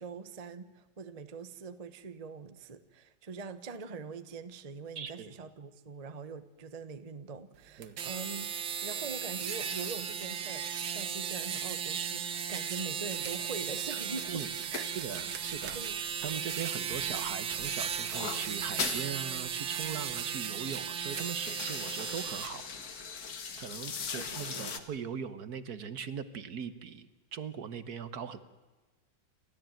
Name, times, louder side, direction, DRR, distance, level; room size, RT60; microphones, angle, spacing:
voice 1, 0.0-8.5 8.8-14.4 14.7-14.9 15.4-15.5 15.7-16.0 24.0-24.8, right 4 dB, 25° right, 11 dB, 0.9 m, -43 dB
voice 2, 4.9-5.3 7.8-8.0 14.3-14.5 14.9-23.1 23.6-28.4, right 7 dB, 60° right, 13 dB, 1.5 m, -40 dB
sound 1, 7.8-22.5, right 8 dB, 90° right, 2.1 m, -36 dB
sound 2, 14.0-16.6 16.9-19.1 19.5-19.6 19.8-20.2 20.7-24.8, left 6 dB, 50° left, 2.0 m, -41 dB
29.5 x 13.5 x 9.0 m, 1.2 s
omnidirectional pair, 2.1 m